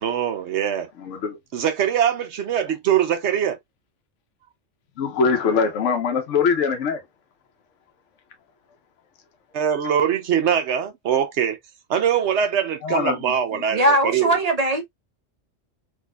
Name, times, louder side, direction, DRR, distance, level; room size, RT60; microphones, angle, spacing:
voice 1, 0.0-0.9 1.5-3.6 9.5-11.6 11.9-14.3, right 8 dB, 65° right, 0.9 m, -22 dB
voice 2, 1.0-1.4 5.0-7.0 12.8-13.2, left 5 dB, 75° left, 1.1 m, -22 dB
voice 3, 13.7-14.8, right 1 dB, 35° right, 0.9 m, -20 dB
3.6 x 2.5 x 2.2 m
omnidirectional pair, 1.3 m